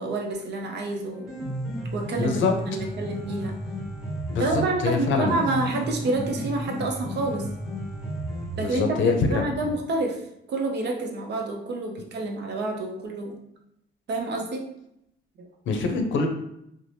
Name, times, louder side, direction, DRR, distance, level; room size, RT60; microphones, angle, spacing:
voice 1, 0.0-1.3 1.9-3.6 4.4-7.5 8.6-10.2 10.5-13.4 14.1-14.7 15.4-15.5, right 2 dB, 60° right, 2 dB, 0.6 m, -28 dB
Piano, 1.1-9.1, right 1 dB, ahead, 1.1 m, -33 dB
voice 2, 2.2-2.5 4.3-5.4 8.6-9.4 15.7-16.3, left 4 dB, 75° left, 4 dB, 0.6 m, -24 dB
2.7 x 2.0 x 3.2 m, 0.79 s
cardioid pair, 90°, 20 cm